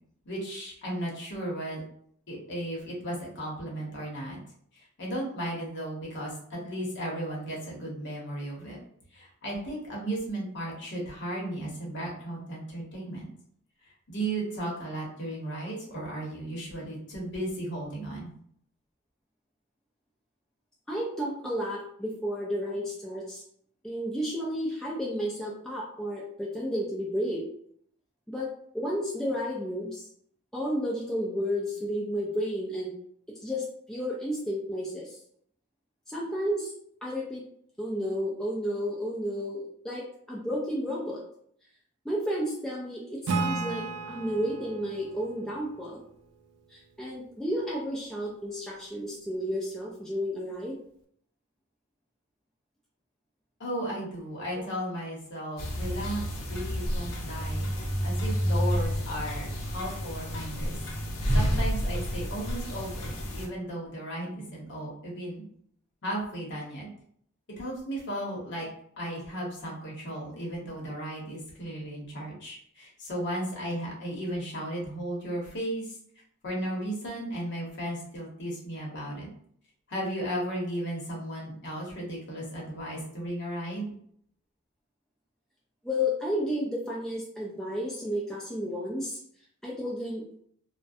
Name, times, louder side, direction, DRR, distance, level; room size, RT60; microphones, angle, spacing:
voice 1, 0.2-1.8 2.3-4.4 4.7-8.8 9.1-13.3 14.1-18.3 53.6-60.8 61.3-65.4 66.0-66.9 67.6-68.7 69.0-76.0 76.4-79.3 79.9-83.9, right 1 dB, 50° left, -3 dB, 0.8 m, -35 dB
voice 2, 20.9-23.4 23.8-27.4 28.3-28.5 28.7-30.1 30.5-32.9 33.4-35.2 36.1-36.7 37.0-37.4 37.8-41.2 42.0-46.0 46.7-50.8 54.5-54.6 85.8-89.2 89.6-90.2, equal, ahead, -5 dB, 0.3 m, -32 dB
Acoustic guitar / Strum, 43.3-46.7, right 3 dB, 75° right, 0.4 m, -34 dB
sound 1, 55.6-63.5, equal, 75° left, 0.6 m, -30 dB
2.3 x 2.1 x 2.6 m, 0.64 s
head